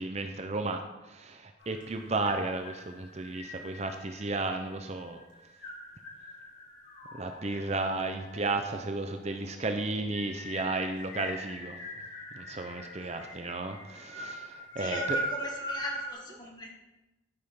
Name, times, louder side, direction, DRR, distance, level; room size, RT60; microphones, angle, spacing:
voice 1, 0.0-5.2 7.2-11.8 12.3-15.2, right 2 dB, 35° right, 6 dB, 0.6 m, -33 dB
sound 1, 1.6-16.1, right 1 dB, 60° left, 3.8 m, -41 dB
voice 2, 14.8-16.7, left 2 dB, 25° left, 0 dB, 1.8 m, -40 dB
12.5 x 5.5 x 5.8 m, 1.1 s
head